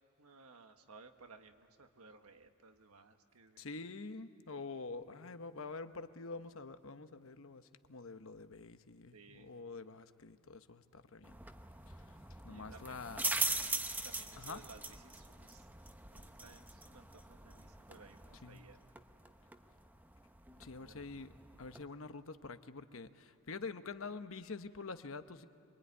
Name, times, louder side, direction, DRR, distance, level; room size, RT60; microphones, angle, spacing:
voice 1, 0.2-3.7 9.1-9.5 12.4-13.1 14.0-15.7 16.1-18.9 20.7-21.2, right 4 dB, 90° right, 6 dB, 1.5 m, -59 dB
voice 2, 3.6-11.4 11.9-12.2 12.4-13.2 14.4-14.6 18.4-18.6 20.6-21.3 21.6-25.5, left 4 dB, 65° left, 10 dB, 1.0 m, -46 dB
sound 1, 11.2-21.8, right 2 dB, 10° right, 0.8 m, -42 dB
25.5 x 23.5 x 9.6 m, 2.4 s
head